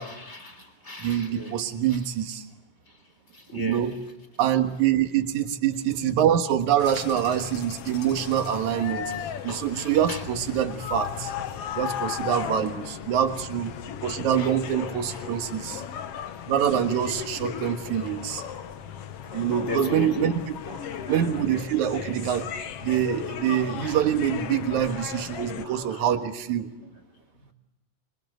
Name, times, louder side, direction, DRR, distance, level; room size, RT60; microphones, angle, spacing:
voice 1, 0.0-1.6 1.9-2.0 3.3-3.9 9.1-10.2 11.5-11.7 14.4-15.3 18.4-18.5 19.3-20.3 20.6-21.6 24.8-25.3 25.6-26.1 26.8-26.9, left 3 dB, 20° left, 7 dB, 3.7 m, -39 dB
voice 2, 1.0-2.4 3.5-4.0 4.4-9.1 9.4-11.3 11.8-13.7 14.0-15.8 16.5-18.4 19.3-20.3 20.7-20.8 21.1-22.5 22.8-26.7, right 10 dB, 60° right, 6 dB, 2.7 m, -25 dB
sound 1, 6.8-25.7, left 9 dB, 65° left, 1.5 m, -36 dB
26.0 x 24.5 x 8.0 m, 0.92 s
omnidirectional pair, 4.1 m